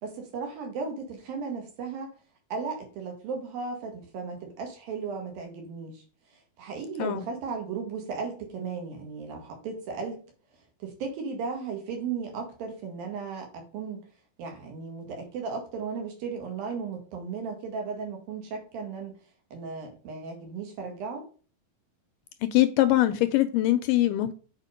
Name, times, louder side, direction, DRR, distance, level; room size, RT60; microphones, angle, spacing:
voice 1, 0.0-2.1 2.5-6.0 6.6-10.2 10.8-14.0 14.4-19.1 19.5-21.2, right 5 dB, 75° right, 3.7 m, -35 dB
voice 2, 22.5-24.3, left 15 dB, 80° left, 2.0 m, -22 dB
7.4 x 5.0 x 5.1 m
omnidirectional pair, 4.2 m